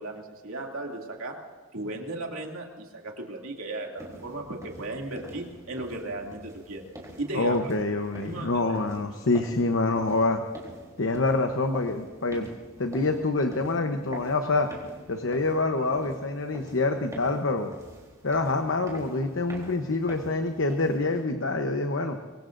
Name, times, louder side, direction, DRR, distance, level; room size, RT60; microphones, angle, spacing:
voice 1, 0.0-1.4 1.7-6.8 7.2-7.7 8.2-8.8, right 2 dB, 85° right, 0 dB, 2.6 m, -36 dB
sound 1, 4.0-21.2, right 1 dB, 15° right, 3.4 m, -46 dB
voice 2, 7.3-10.4 11.0-12.5 12.8-14.7 15.1-17.7 18.2-22.2, left 3 dB, 65° left, 5 dB, 0.9 m, -26 dB
25.0 x 22.0 x 2.6 m, 1.5 s
head